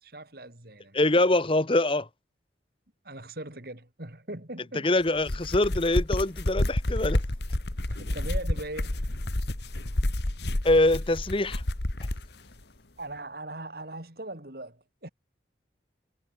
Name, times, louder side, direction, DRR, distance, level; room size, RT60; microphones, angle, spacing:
voice 1, 0.0-1.0 3.0-4.9 7.9-9.0 13.0-15.1, right 2 dB, 55° right, 3.6 m, -40 dB
voice 2, 0.9-2.1 4.8-7.2 10.6-11.6, left 2 dB, 30° left, 1.1 m, -24 dB
sound 1, 5.1-12.3, left 1 dB, 65° left, 1.8 m, -29 dB
head